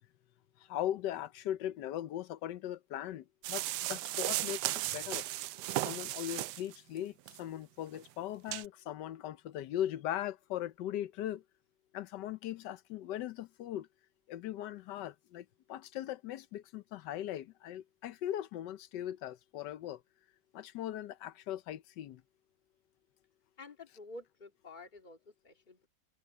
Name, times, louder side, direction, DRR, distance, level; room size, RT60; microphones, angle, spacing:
voice 1, 0.7-5.2 5.8-11.4 11.9-13.9 14.3-20.0 20.5-22.2, left 12 dB, 85° left, 1.3 m, -39 dB
sound 1, 3.4-6.8 7.3-7.4 7.9-8.0 8.5-8.7, right 15 dB, 80° right, 1.1 m, -35 dB
voice 2, 23.6-25.9, left 2 dB, 25° left, 2.4 m, -50 dB
omnidirectional pair, 1.8 m